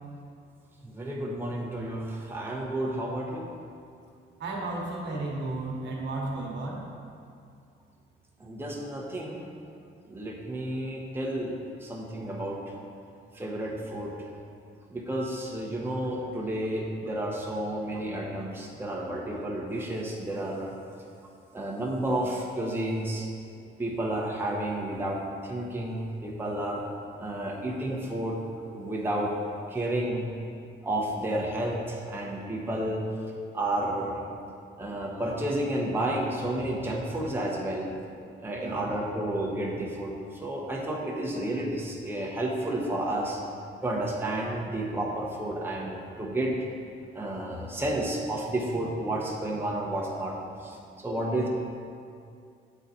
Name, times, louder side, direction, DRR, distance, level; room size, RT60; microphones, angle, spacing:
voice 1, 0.8-3.5 8.4-9.4 10.1-12.6 13.3-14.1 14.9-20.7 21.5-23.3 23.8-26.8 27.2-28.4 28.7-29.3 29.7-30.2 30.8-33.0 33.5-34.2 34.8-37.9 38.4-43.4 43.8-46.5 47.1-50.4 50.6-51.5, right 1 dB, 10° right, -3 dB, 0.9 m, -31 dB
voice 2, 4.4-6.8 38.6-38.8, right 2 dB, 60° right, -2 dB, 1.2 m, -33 dB
8.2 x 3.9 x 4.1 m, 2.4 s
cardioid pair, 90°, 20 cm